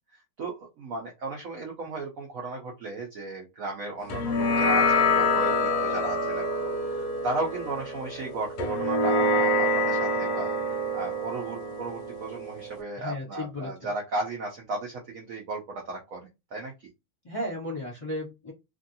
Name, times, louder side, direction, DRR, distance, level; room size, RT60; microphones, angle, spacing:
voice 1, 0.4-6.4 6.9-10.5 10.9-16.2 16.5-16.7, right 2 dB, 65° right, 0 dB, 0.8 m, -35 dB
sound 1, 4.1-12.8, left 1 dB, 70° left, 1.0 m, -26 dB
voice 2, 13.0-13.7 17.2-18.5, left 1 dB, 20° left, -6 dB, 1.4 m, -34 dB
3.0 x 2.6 x 2.7 m, 0.23 s
omnidirectional pair, 2.2 m